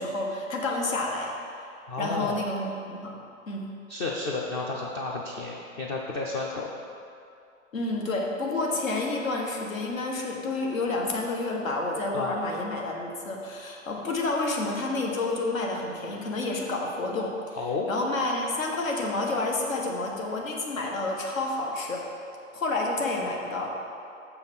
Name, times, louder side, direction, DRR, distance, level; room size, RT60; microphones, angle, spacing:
voice 1, 0.0-1.3 2.0-3.7 7.7-17.6 17.9-22.1 22.5-23.8, left 2 dB, 80° left, 0 dB, 1.6 m, -29 dB
voice 2, 1.9-2.4 3.9-6.7 12.1-12.4 17.6-17.9, left 3 dB, 20° left, -2 dB, 0.4 m, -32 dB
6.7 x 5.6 x 6.1 m, 2.5 s
hypercardioid pair, 130°, 40 cm